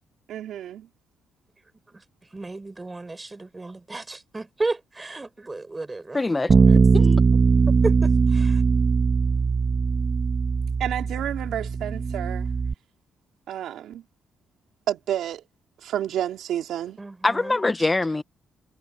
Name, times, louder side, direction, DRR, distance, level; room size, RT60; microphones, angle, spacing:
voice 1, 0.3-0.9 10.8-12.5 13.5-14.0 14.9-15.4 15.8-17.0, right 11 dB, 75° right, 3.9 m, -30 dB
voice 2, 2.3-6.2 6.7-6.8 7.8-8.6 17.0-17.6, right 2 dB, 20° right, 4.7 m, -33 dB
voice 3, 6.1-6.5 6.9-7.2 17.2-18.2, left 2 dB, 20° left, 0.9 m, -23 dB
Bass guitar, 6.5-12.7, right 5 dB, 40° right, 1.7 m, -20 dB
cardioid pair, 90°, 0 cm